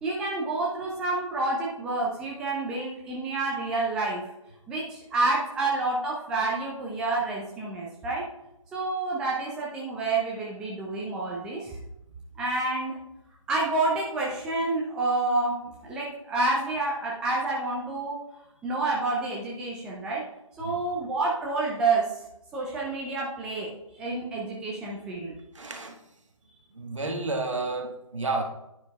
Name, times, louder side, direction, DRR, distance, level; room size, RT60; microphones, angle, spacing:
voice 1, 0.0-4.3 4.7-8.3 8.7-11.8 12.4-13.0 13.5-18.2 18.6-20.2 20.6-22.1 22.5-25.3, right 3 dB, 5° right, -4 dB, 0.6 m, -29 dB
voice 2, 25.5-26.0 26.7-28.4, right 3 dB, 60° right, 3 dB, 1.6 m, -31 dB
10.0 x 9.5 x 2.3 m, 0.87 s
figure-of-eight pair, 145°, 18 cm